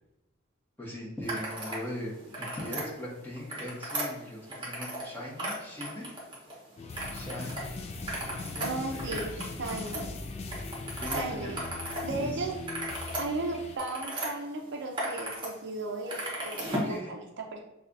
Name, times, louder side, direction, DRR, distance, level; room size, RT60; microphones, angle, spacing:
voice 1, 0.8-6.1 7.1-9.2 11.0-11.6 12.0-12.5 16.8-17.1, left 1 dB, 10° left, -7 dB, 1.2 m, -40 dB
sound 1, 1.2-1.8 2.2-2.9 3.3-5.1 5.3-6.5 6.9-7.6 7.9-12.1 12.4-14.3 14.7-15.5 15.8-16.9, right 1 dB, 25° right, 1.0 m, -36 dB
sound 2, 6.8-13.8, left 3 dB, 30° left, 0.3 m, -40 dB
voice 2, 8.6-9.3 9.6-10.1 11.1-11.6 12.0-12.5 13.2-17.6, right 2 dB, 60° right, 2 dB, 0.5 m, -35 dB
6.3 x 2.4 x 2.6 m, 0.98 s
head